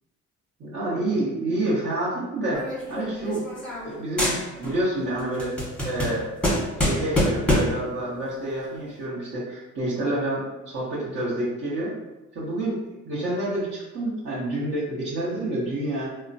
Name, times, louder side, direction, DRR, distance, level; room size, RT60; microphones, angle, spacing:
voice 1, 0.6-3.4 3.8-5.5 5.8-6.3 6.8-11.9 12.3-16.1, right 1 dB, 55° right, -11 dB, 0.9 m, -28 dB
sound 1, 2.5-3.9 4.2-4.8 5.2-7.9, left 1 dB, 5° left, 0.9 m, -25 dB
3.0 x 2.1 x 2.6 m, 1.0 s
cardioid pair, 90°, 30 cm